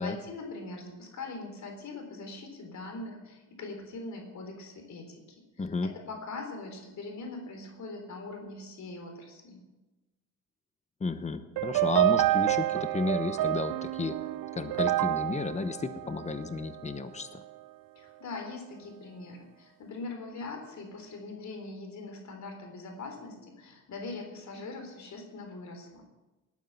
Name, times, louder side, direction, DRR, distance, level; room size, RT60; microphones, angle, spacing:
voice 1, 0.0-5.2 5.5-9.6 18.0-26.1, left 3 dB, 55° left, 4 dB, 3.7 m, -42 dB
voice 2, 5.6-5.9 11.0-14.1 14.5-17.4, left 4 dB, 20° left, 11 dB, 1.0 m, -32 dB
sound 1, 11.6-16.9, right 15 dB, 90° right, 0.6 m, -28 dB
19.0 x 9.5 x 7.1 m, 1.1 s
cardioid pair, 135°, 33 cm